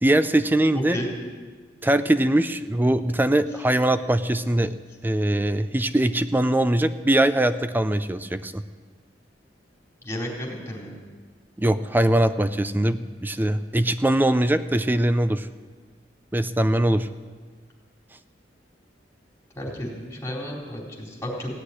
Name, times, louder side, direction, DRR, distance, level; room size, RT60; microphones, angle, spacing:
voice 1, 0.0-1.0 1.8-4.7 5.0-8.6 11.6-15.5 16.3-17.1, right 1 dB, 10° right, 12 dB, 0.5 m, -22 dB
voice 2, 0.7-1.1 10.0-10.9 19.6-21.5, left 1 dB, 15° left, -3 dB, 4.1 m, -32 dB
16.5 x 8.1 x 10.0 m, 1.5 s
head